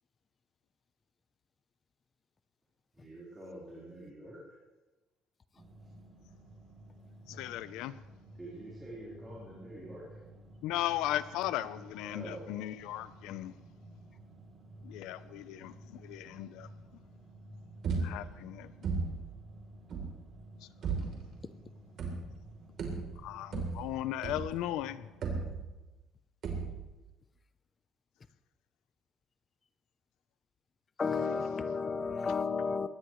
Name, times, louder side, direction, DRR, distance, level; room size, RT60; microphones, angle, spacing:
voice 1, 2.9-4.6 5.8-5.9 8.3-10.2 12.0-12.4, right 1 dB, 10° right, 4.3 m, -46 dB
sound 1, 5.6-25.4, right 1 dB, 25° right, 3.3 m, -53 dB
voice 2, 7.3-8.0 10.6-13.6 14.8-16.7 18.0-18.9 20.6-20.7 21.0-21.1 23.2-25.1, left 13 dB, 85° left, 0.7 m, -37 dB
sound 2, 17.8-18.5 18.8-19.4 19.9-20.3 20.8-21.3 22.0-22.5 22.8-24.7 25.2-26.0 26.4-27.0, right 4 dB, 45° right, 3.5 m, -36 dB
voice 3, 31.0-32.9, left 5 dB, 25° left, 0.7 m, -32 dB
22.0 x 18.0 x 3.2 m
cardioid pair, 160°, 0 cm